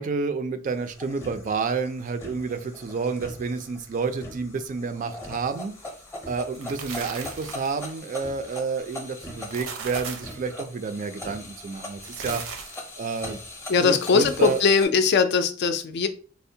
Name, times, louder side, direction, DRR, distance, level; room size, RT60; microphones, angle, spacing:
voice 1, 0.0-5.7 6.3-12.4 13.0-13.4 13.8-14.6, right 4 dB, 40° right, 9 dB, 0.3 m, -29 dB
sound 1, 0.7-14.9, left 1 dB, 15° left, 0.6 m, -41 dB
sound 2, 6.5-7.8 9.3-10.4 11.9-12.9, right 5 dB, 80° right, 0.6 m, -37 dB
voice 2, 13.7-16.1, left 5 dB, 55° left, 8 dB, 0.4 m, -20 dB
4.3 x 2.1 x 2.6 m, 0.39 s
head